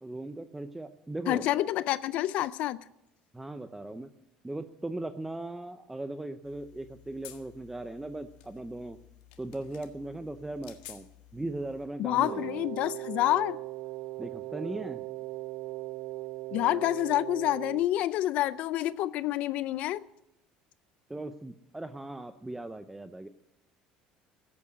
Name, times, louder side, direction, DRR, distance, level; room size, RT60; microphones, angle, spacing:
voice 1, 0.0-1.5 3.3-4.1 4.4-9.0 9.4-11.1 11.3-12.6 14.2-15.0 21.1-23.3, right 2 dB, 10° right, 0.6 m, -38 dB
voice 2, 1.3-2.8 12.0-13.6 16.5-20.0, left 14 dB, 60° left, 0.4 m, -28 dB
sound 1, 6.4-11.9, left 13 dB, 80° left, 1.5 m, -53 dB
Wind instrument woodwind instrument, 12.2-17.9, right 17 dB, 60° right, 0.8 m, -39 dB
14.5 x 8.7 x 9.8 m
cardioid pair, 130°, 3 cm